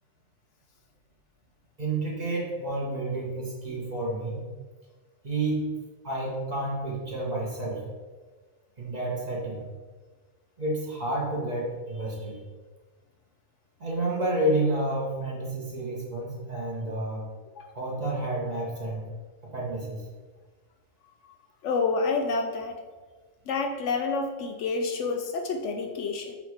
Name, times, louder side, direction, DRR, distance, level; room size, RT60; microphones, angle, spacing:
voice 1, 1.8-4.4 5.2-5.6 6.0-7.8 8.8-9.6 10.6-12.4 13.8-17.2 17.7-19.0 19.5-20.0, right 2 dB, 30° right, -5 dB, 1.6 m, -30 dB
voice 2, 21.6-22.8 23.5-26.4, left 4 dB, 70° left, 5 dB, 0.9 m, -28 dB
7.7 x 3.0 x 4.7 m, 1.4 s
omnidirectional pair, 1.4 m